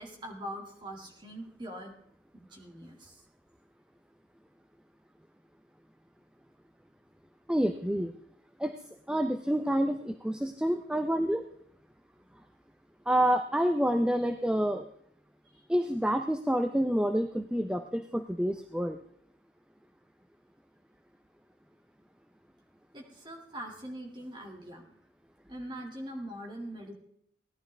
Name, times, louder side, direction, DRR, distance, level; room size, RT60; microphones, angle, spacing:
voice 1, 0.0-2.0 2.3-3.2 22.9-25.0 25.5-26.9, right 1 dB, 25° right, 1 dB, 2.2 m, -42 dB
voice 2, 7.5-8.1 8.6-8.8 9.1-11.5 13.1-14.9 15.7-19.0, equal, 5° right, 7 dB, 0.5 m, -28 dB
17.0 x 11.5 x 3.3 m, 0.67 s
head